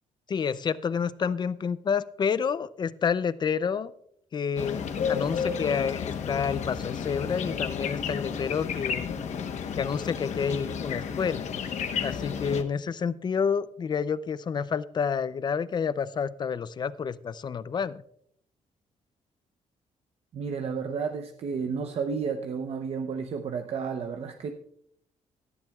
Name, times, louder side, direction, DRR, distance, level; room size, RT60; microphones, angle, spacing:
voice 1, 0.3-3.9 4.3-9.1 9.8-11.5 12.0-18.0, left 6 dB, 35° left, 16 dB, 0.5 m, -29 dB
sound 1, 4.6-12.6, left 6 dB, 65° left, 1.1 m, -32 dB
voice 2, 20.3-24.5, right 5 dB, 55° right, 5 dB, 0.8 m, -32 dB
17.5 x 12.0 x 2.4 m, 0.72 s
cardioid pair, 125°, 13 cm